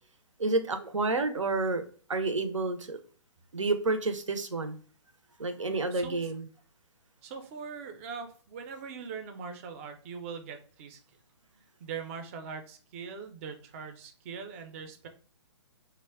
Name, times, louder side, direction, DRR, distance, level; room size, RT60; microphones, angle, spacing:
voice 1, 0.4-1.8 2.1-3.0 3.5-4.8 5.4-6.5, right 3 dB, 90° right, 0.5 m, -29 dB
voice 2, 7.2-11.0 11.8-15.1, right 6 dB, 30° right, 0.4 m, -41 dB
2.2 x 2.0 x 3.4 m
figure-of-eight pair, 130°, 16 cm